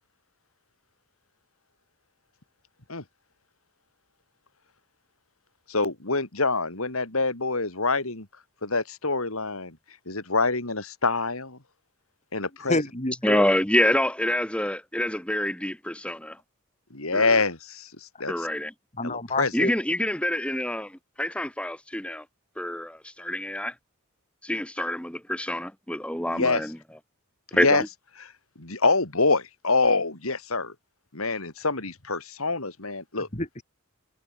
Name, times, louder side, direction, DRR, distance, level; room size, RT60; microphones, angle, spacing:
voice 1, 5.7-8.3 8.6-9.8 10.1-11.6 12.3-12.8 16.9-17.9 18.2-18.5 19.0-19.5 26.3-26.6 27.6-27.8 28.2-28.3 28.6-30.7 31.1-33.3, left 3 dB, 75° left, 3.9 m, -25 dB
voice 2, 12.7-13.4 19.0-19.7 33.2-33.6, left 2 dB, 30° left, 4.1 m, -28 dB
voice 3, 13.2-16.4 17.1-17.4 18.3-18.7 19.5-22.2 22.6-23.7 24.4-26.8 27.5-27.9, left 1 dB, 5° left, 2.3 m, -27 dB
head